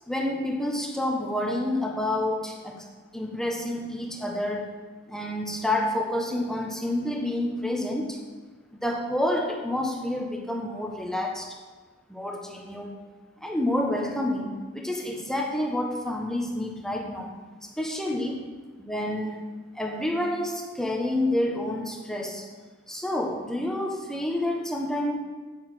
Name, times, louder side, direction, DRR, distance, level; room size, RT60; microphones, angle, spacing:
voice 1, 0.1-2.8 3.1-4.7 5.1-8.2 8.8-11.5 12.1-12.9 13.4-17.3 17.8-18.5 18.8-19.4 19.7-22.4 22.9-25.2, left 1 dB, ahead, 1 dB, 1.1 m, -28 dB
7.9 x 6.7 x 7.7 m, 1.4 s
head